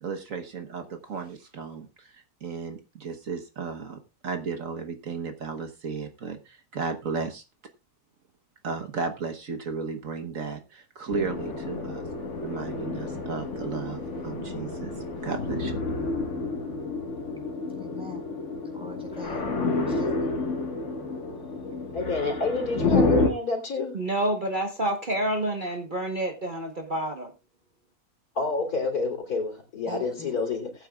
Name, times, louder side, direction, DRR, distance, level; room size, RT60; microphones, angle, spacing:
voice 1, 0.0-7.4 8.6-12.0 12.4-14.9 15.2-15.8, right 5 dB, 60° right, 1.5 m, -34 dB
sound 1, 11.1-23.3, left 3 dB, 50° left, 1.9 m, -29 dB
voice 2, 17.7-18.3 18.7-19.5 19.9-20.4 29.9-30.4, left 2 dB, 5° right, 4.2 m, -41 dB
voice 3, 21.9-24.0 28.4-30.9, left 3 dB, 75° left, 3.9 m, -29 dB
voice 4, 23.9-27.3, right 1 dB, 35° right, 1.2 m, -28 dB
19.5 x 8.8 x 2.4 m
omnidirectional pair, 1.6 m